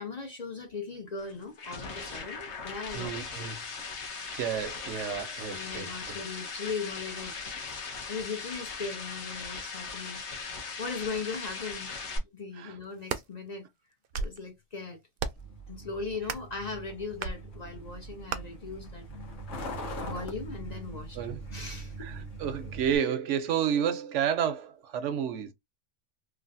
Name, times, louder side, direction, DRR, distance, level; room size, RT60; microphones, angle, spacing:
voice 1, 0.0-3.5 5.5-7.4 7.7-7.8 8.1-11.9 12.2-13.7 14.1-15.0 15.7-19.1 20.0-21.2 21.5-22.1, left 4 dB, 45° left, 0.6 m, -39 dB
sound 1, 1.2-12.2, left 4 dB, 70° left, 1.2 m, -39 dB
voice 2, 2.9-3.6 4.3-6.2 12.6-12.8 21.1-21.4 22.0-25.5, right 8 dB, 80° right, 0.9 m, -31 dB
sound 2, 12.8-13.3 13.9-14.4 15.2-15.5 16.2-16.6 17.2-17.4 18.3-18.4, right 5 dB, 60° right, 0.6 m, -34 dB
Truck, 15.4-23.0, right 1 dB, 85° left, 1.4 m, -41 dB
3.2 x 2.4 x 2.5 m
omnidirectional pair, 1.2 m